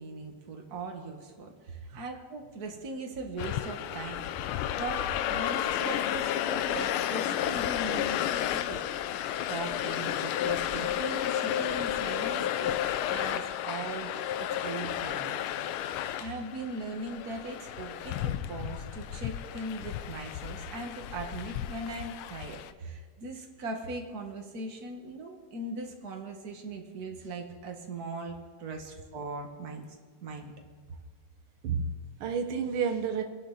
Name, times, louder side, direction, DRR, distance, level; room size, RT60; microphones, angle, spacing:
voice 1, 0.0-4.3 4.8-8.8 9.5-15.4 16.2-29.9 30.2-30.5, right 2 dB, 45° right, 2 dB, 2.1 m, -39 dB
sound 1, 3.4-22.7, left 11 dB, 85° left, 1.5 m, -32 dB
voice 2, 31.6-33.2, right 6 dB, 85° right, 6 dB, 1.8 m, -31 dB
25.5 x 11.5 x 4.2 m, 1.5 s
omnidirectional pair, 2.3 m